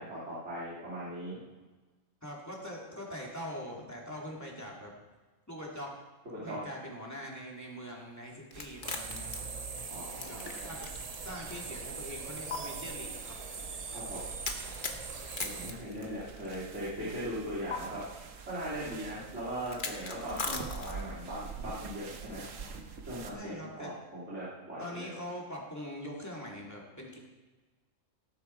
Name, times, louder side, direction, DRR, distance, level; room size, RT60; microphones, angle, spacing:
voice 1, 0.0-1.4 6.3-6.6 9.9-10.7 13.9-14.2 15.4-18.0 18.5-22.4 23.0-25.1, right 1 dB, 65° right, -10 dB, 3.4 m, -39 dB
voice 2, 2.2-4.9 5.5-6.0 6.4-9.4 10.2-13.4 23.3-23.9 24.8-27.2, equal, 15° left, -3 dB, 2.8 m, -43 dB
sound 1, 8.5-11.2 11.5-11.6 12.5-12.6 14.4-16.6 17.7-17.8 19.7-21.2, left 4 dB, 40° left, 1.3 m, -38 dB
sound 2, 8.5-23.3, right 5 dB, 85° right, 1.4 m, -47 dB
sound 3, 8.8-15.7, right 5 dB, 35° right, 0.7 m, -42 dB
18.0 x 8.1 x 4.6 m, 1.3 s
omnidirectional pair, 1.3 m